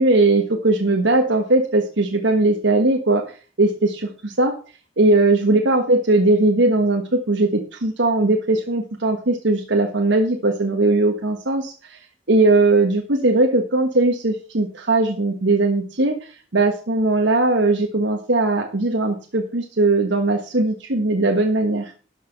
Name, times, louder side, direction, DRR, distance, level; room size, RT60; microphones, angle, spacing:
voice 1, 0.0-3.2 3.6-4.5 5.0-12.0 12.3-21.9, right 2 dB, 80° right, 2 dB, 1.5 m, -19 dB
12.5 x 6.0 x 5.7 m, 0.37 s
head